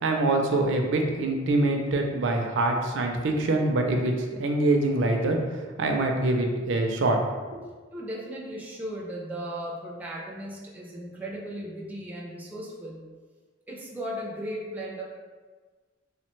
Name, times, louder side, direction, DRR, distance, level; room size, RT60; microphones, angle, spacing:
voice 1, 0.0-5.4 5.8-7.2 7.6-7.7, right 2 dB, 75° right, 2 dB, 0.4 m, -24 dB
voice 2, 7.9-13.0 13.7-15.0, equal, 10° right, -4 dB, 0.4 m, -36 dB
3.0 x 2.1 x 3.0 m, 1.4 s
head